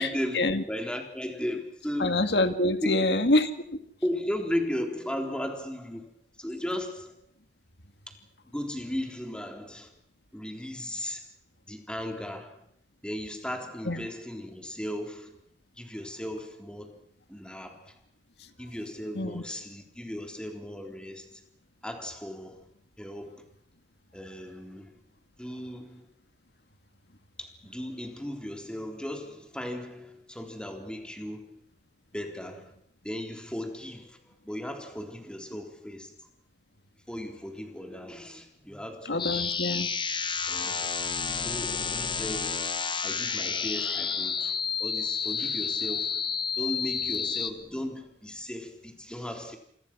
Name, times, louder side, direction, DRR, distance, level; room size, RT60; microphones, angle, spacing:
voice 1, 0.0-2.2 2.6-3.2 4.0-6.1 6.4-7.1 8.4-9.9 10.3-11.3 11.7-12.6 13.0-15.4 15.8-17.0 17.3-18.0 18.6-21.4 21.8-22.7 23.0-23.4 24.1-24.9 25.4-26.1 27.4-31.6 32.1-32.7 33.0-34.2 34.4-36.1 37.1-39.6 40.5-40.9 41.4-42.7 43.0-46.3 46.6-49.6, left 1 dB, 5° left, 3 dB, 3.8 m, -36 dB
voice 2, 2.0-3.8 13.9-14.1 19.1-19.4 39.1-39.9, left 2 dB, 70° left, 9 dB, 2.1 m, -26 dB
sound 1, 39.2-47.5, left 6 dB, 25° left, 1.4 m, -30 dB
28.0 x 21.0 x 6.2 m, 0.66 s
head